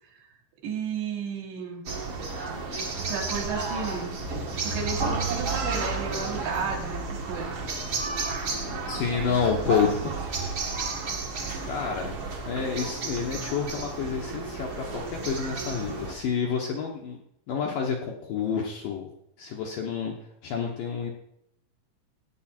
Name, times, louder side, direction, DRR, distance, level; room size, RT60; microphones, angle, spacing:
voice 1, 0.6-1.8 3.1-4.2 4.6-7.7, right 5 dB, 70° right, 0 dB, 4.3 m, -33 dB
sound 1, 1.8-16.1, right 3 dB, 45° right, 1.8 m, -32 dB
voice 2, 8.9-10.1 11.7-12.2 12.4-17.2 17.5-19.1 19.4-20.1 20.4-21.1, left 6 dB, 70° left, 0 dB, 2.2 m, -29 dB
16.0 x 9.8 x 4.4 m, 0.77 s
omnidirectional pair, 5.2 m